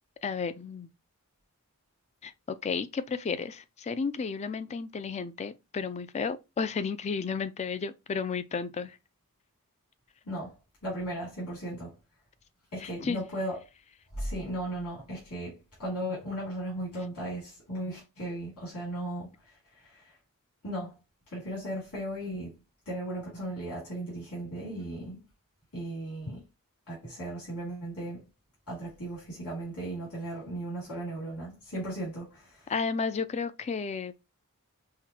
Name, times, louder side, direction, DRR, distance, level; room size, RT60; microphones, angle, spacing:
voice 1, 0.2-0.9 2.2-9.0 12.8-13.2 32.7-34.2, left 5 dB, 30° left, 0.3 m, -33 dB
voice 2, 10.3-10.6 10.8-11.9 12.7-13.6 14.1-20.2 20.6-21.0 21.3-22.5 22.9-25.2 25.7-26.4 26.9-28.2 28.7-32.7, right 1 dB, 75° left, 2.7 m, -36 dB
5.7 x 2.2 x 2.9 m
head